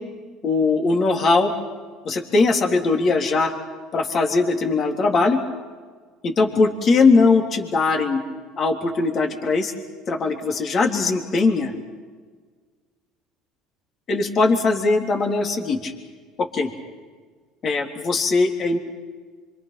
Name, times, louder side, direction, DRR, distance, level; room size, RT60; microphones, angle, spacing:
voice 1, 0.4-1.5 2.0-3.5 3.9-5.4 6.2-8.2 8.6-9.7 10.1-11.7 14.1-15.9 16.5-16.7 17.6-18.8, left 3 dB, 40° left, 3 dB, 3.4 m, -20 dB
25.5 x 25.5 x 5.9 m, 1.5 s
supercardioid pair, 95°, 0 cm